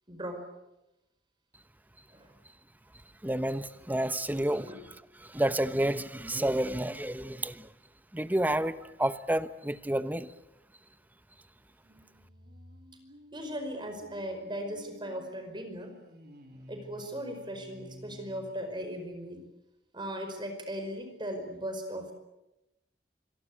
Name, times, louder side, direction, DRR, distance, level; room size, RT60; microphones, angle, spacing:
voice 1, 0.1-0.4 2.1-2.3 4.3-4.8 13.3-15.9 16.5-19.4 19.9-22.1, equal, 25° right, 6 dB, 5.1 m, -38 dB
voice 2, 3.2-4.7 5.2-7.7 8.1-10.3, right 1 dB, 10° right, 13 dB, 1.0 m, -30 dB
sound 1, 11.8-19.4, left 1 dB, 60° right, 4.0 m, -53 dB
26.0 x 22.5 x 8.6 m, 0.93 s
head